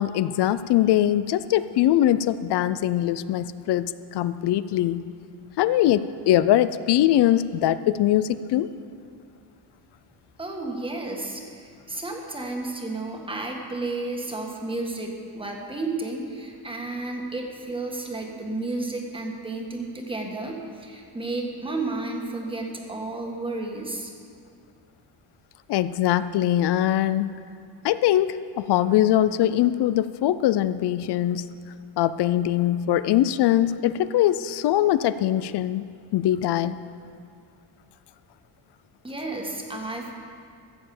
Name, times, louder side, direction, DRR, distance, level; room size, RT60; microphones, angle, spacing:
voice 1, 0.0-5.1 5.6-8.7 25.7-27.3 27.8-31.5 32.0-35.8 36.1-36.8, left 12 dB, 60° left, 14 dB, 0.5 m, -22 dB
voice 2, 10.4-24.1 39.0-40.2, right 2 dB, 10° right, 1 dB, 1.6 m, -32 dB
14.5 x 7.6 x 7.1 m, 2.3 s
cardioid pair, 140°, 47 cm